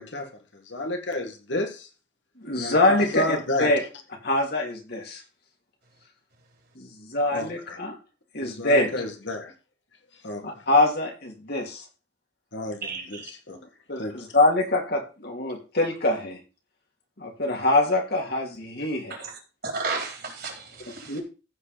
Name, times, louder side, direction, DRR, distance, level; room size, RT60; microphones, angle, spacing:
voice 1, 0.0-1.9 2.6-3.7 7.3-7.8 8.4-9.5 10.2-10.6 12.5-13.6 14.0-14.4, left 1 dB, 75° left, 2.0 m, -31 dB
voice 2, 2.4-3.8 4.2-5.2 6.7-7.9 8.3-8.9 10.4-11.8 13.9-16.4 17.2-19.2 21.1-21.2, left 2 dB, 55° left, 3.0 m, -24 dB
voice 3, 12.8-13.3 19.2-19.3 19.6-21.2, right 4 dB, 55° right, 4.0 m, -33 dB
15.0 x 5.1 x 5.1 m
head